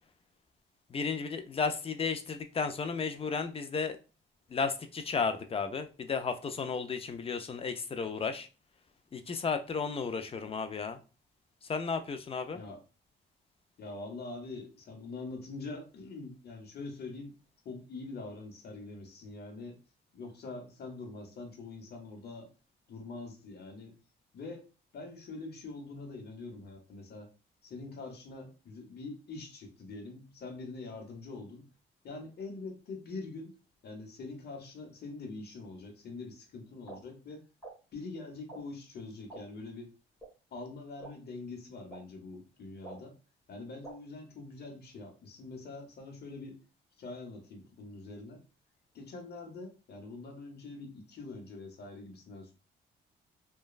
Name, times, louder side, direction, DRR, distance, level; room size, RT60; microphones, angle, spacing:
voice 1, 0.9-4.0 4.5-8.5 9.1-11.0 11.6-12.6, left 5 dB, 30° left, 8 dB, 0.4 m, -33 dB
voice 2, 13.8-17.4 17.6-19.8 20.1-22.5 22.9-23.9 24.3-24.7 24.9-27.3 27.6-31.7 32.0-33.5 33.8-37.4 37.9-39.9 40.5-43.1 43.5-46.6 47.0-48.4 48.9-52.5, left 3 dB, 55° left, 3 dB, 0.9 m, -44 dB
sound 1, 36.9-37.0 37.6-37.7 38.5-38.6 39.3-39.4 40.2-40.3 41.0-41.1 41.9-42.0 42.8-43.0 43.8-43.9, right 3 dB, 5° left, 1.5 m, -45 dB
2.9 x 2.2 x 2.3 m, 0.32 s
cardioid pair, 90°, 20 cm